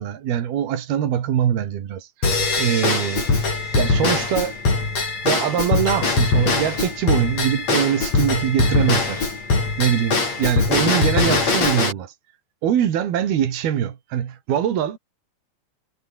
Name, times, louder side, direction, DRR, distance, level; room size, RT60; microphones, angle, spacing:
voice 1, 0.0-3.3 3.7-4.5 5.2-9.3 9.8-12.1 12.6-15.0, right 9 dB, 80° right, 4.3 m, -23 dB
Drum kit / Drum / Bell, 2.2-11.9, left 4 dB, 45° left, 7.3 m, -21 dB
omnidirectional pair, 4.4 m